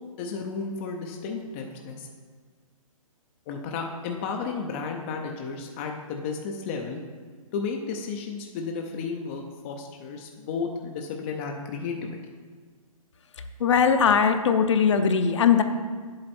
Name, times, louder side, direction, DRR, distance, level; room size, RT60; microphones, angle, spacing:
voice 1, 0.2-2.1 3.5-7.0 7.5-12.1, left 5 dB, 20° left, 2 dB, 0.5 m, -33 dB
voice 2, 13.6-15.6, left 6 dB, 55° left, 8 dB, 0.8 m, -20 dB
9.1 x 7.7 x 4.3 m, 1.5 s
hypercardioid pair, 160°, 18 cm